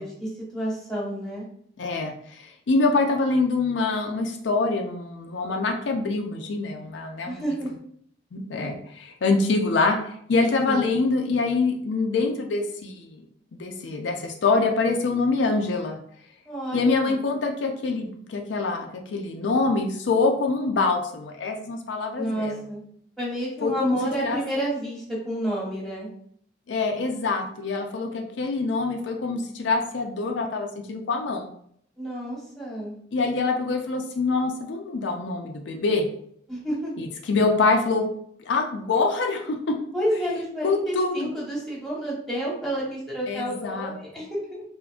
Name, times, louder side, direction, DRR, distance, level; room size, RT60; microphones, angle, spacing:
voice 1, 0.0-1.4 7.2-7.7 10.6-10.9 16.4-17.2 22.2-22.8 23.2-26.1 32.0-33.0 36.5-36.9 39.9-44.6, right 1 dB, ahead, -6 dB, 1.1 m, -30 dB
voice 2, 1.8-7.4 8.3-13.2 13.5-16.0 16.7-22.6 23.6-24.4 26.7-31.5 33.1-36.1 37.0-38.0 38.4-39.8 40.6-41.3 43.3-44.0, left 3 dB, 75° left, 2 dB, 0.4 m, -25 dB
3.5 x 2.5 x 2.3 m, 0.66 s
head